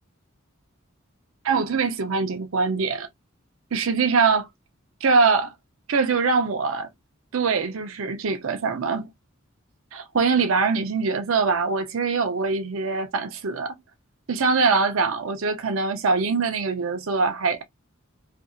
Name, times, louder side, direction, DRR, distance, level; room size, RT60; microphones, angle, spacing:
voice 1, 1.4-3.1 3.7-4.5 5.0-5.5 5.9-6.9 7.3-9.1 9.9-13.8 14.3-17.6, right 4 dB, 80° right, 0.6 m, -23 dB
2.7 x 2.6 x 2.5 m
head